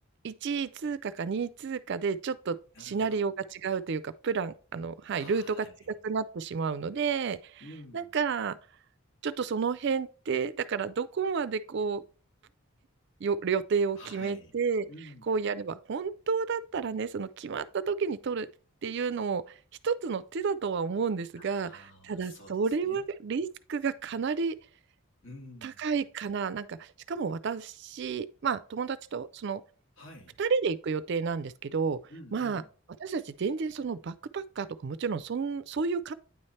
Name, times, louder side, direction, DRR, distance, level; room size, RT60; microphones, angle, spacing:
voice 1, 0.2-5.7 6.0-7.6 7.9-8.6 9.2-12.0 13.2-14.9 15.3-18.5 18.8-19.6 19.8-24.6 25.6-29.6 30.4-32.0 32.3-32.6 33.0-36.1, right 5 dB, 55° right, 0.4 m, -31 dB
voice 2, 2.7-3.2 5.2-5.9 7.6-8.2 14.0-14.5 14.8-15.3 21.4-23.0 25.2-25.9 30.0-30.4 32.1-32.7, left 1 dB, 65° left, 1.9 m, -49 dB
9.3 x 3.2 x 4.2 m
head